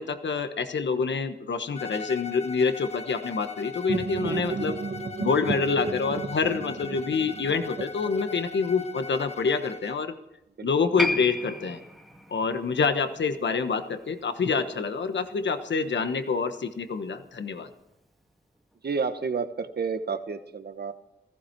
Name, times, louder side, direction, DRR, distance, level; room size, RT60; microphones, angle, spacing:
voice 1, 0.0-4.8 5.2-10.1 10.6-11.8 12.3-17.7, left 5 dB, 80° left, 8 dB, 1.3 m, -27 dB
Bowed string instrument, 1.7-10.1, left 5 dB, 35° left, 1.3 m, -40 dB
sound 1, 3.9-8.7, right 5 dB, 35° right, 0.5 m, -33 dB
voice 2, 4.3-4.6 10.6-10.7 14.7-14.9 18.8-20.9, right 5 dB, 60° right, 10 dB, 1.1 m, -31 dB
Piano, 11.0-17.9 18.2-18.3, left 1 dB, ahead, 1.9 m, -36 dB
16.5 x 15.0 x 4.6 m, 0.88 s
wide cardioid pair, 70°, 18 cm